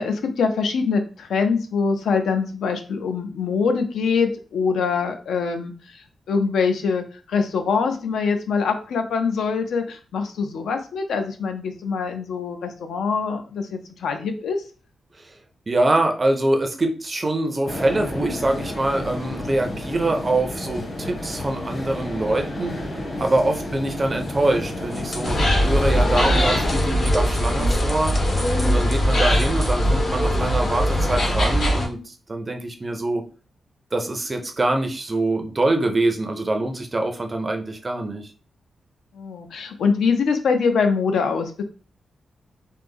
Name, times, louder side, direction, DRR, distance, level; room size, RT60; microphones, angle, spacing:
voice 1, 0.0-14.6 39.1-41.6, left 5 dB, 90° left, 6 dB, 0.5 m, -24 dB
voice 2, 15.7-22.9 23.2-25.4 25.6-28.1 28.6-33.2 33.9-38.2, right 2 dB, 20° right, 4 dB, 0.4 m, -24 dB
sound 1, 17.7-26.8, left 1 dB, 40° left, 1.0 m, -31 dB
sound 2, 24.9-25.4 26.1-29.8, left 1 dB, 25° left, 0.6 m, -38 dB
sound 3, 25.2-31.9, equal, 65° left, 1.0 m, -20 dB
3.2 x 2.0 x 3.5 m, 0.37 s
wide cardioid pair, 170°, 0 cm